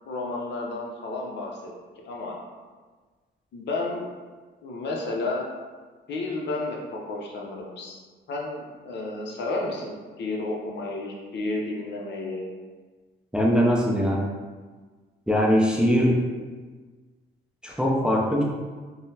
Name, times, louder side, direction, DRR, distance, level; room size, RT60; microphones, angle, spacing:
voice 1, 0.0-1.7 2.1-2.4 3.5-4.1 4.6-5.5 6.1-8.0 8.3-12.5, left 2 dB, 60° left, -1 dB, 0.6 m, -31 dB
voice 2, 13.3-14.2 15.3-16.2 17.6-18.4, equal, 5° right, -3 dB, 0.4 m, -21 dB
3.7 x 2.0 x 2.7 m, 1.4 s
cardioid pair, 90°, 20 cm